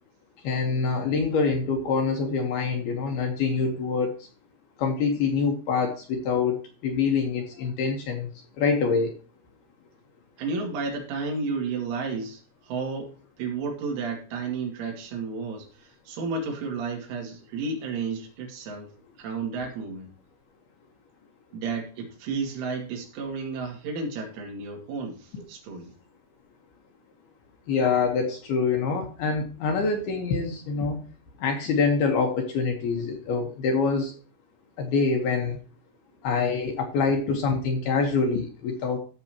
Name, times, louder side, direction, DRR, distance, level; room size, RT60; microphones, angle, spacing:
voice 1, 0.4-4.3 4.8-8.3 8.6-9.1 27.7-31.0 31.4-34.1 34.8-35.6 36.2-39.0, left 5 dB, 70° left, 3 dB, 2.6 m, -25 dB
voice 2, 10.4-20.1 21.5-25.9, right 4 dB, 75° right, 2 dB, 4.9 m, -32 dB
15.0 x 7.1 x 2.9 m, 0.37 s
omnidirectional pair, 5.7 m